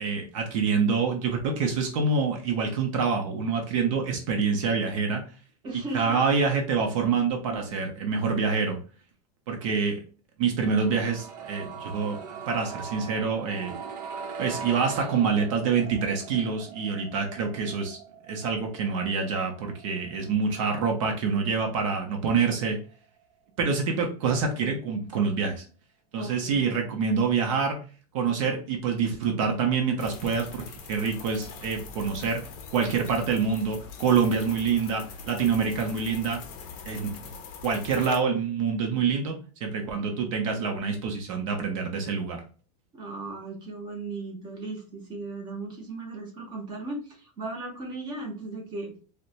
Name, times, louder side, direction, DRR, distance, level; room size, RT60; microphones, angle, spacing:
voice 1, 0.0-5.2 5.9-8.8 9.5-10.0 10.4-13.8 14.4-18.0 18.3-22.8 23.6-25.6 26.1-27.8 28.1-30.6 30.9-32.4 32.7-36.4 36.8-37.1 37.6-39.3 39.6-42.4, right 5 dB, 55° right, 3 dB, 0.7 m, -26 dB
voice 2, 5.6-6.2 26.2-26.7 42.9-48.9, right 2 dB, 20° right, 1 dB, 0.8 m, -37 dB
sound 1, 10.8-22.6 22.9-23.0, right 6 dB, 90° right, 0.8 m, -41 dB
sound 2, 30.0-38.2, left 5 dB, 35° left, 0.6 m, -43 dB
4.2 x 2.1 x 2.5 m, 0.39 s
supercardioid pair, 170°, 20 cm